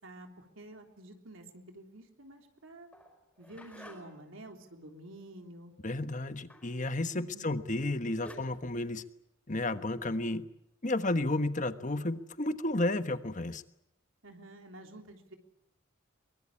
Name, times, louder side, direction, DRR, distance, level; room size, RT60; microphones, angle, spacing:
voice 1, 0.0-2.9 3.4-5.7 7.2-7.5 14.2-15.4, right 1 dB, 75° right, 4 dB, 3.5 m, -50 dB
sound 1, 2.9-4.3 6.5-6.8 7.8-7.9 8.3-8.4, left 1 dB, 5° left, 4.9 m, -51 dB
voice 2, 5.8-9.0 9.5-10.4 10.8-13.6, left 2 dB, 40° left, 10 dB, 1.3 m, -32 dB
23.5 x 22.5 x 8.6 m, 0.83 s
head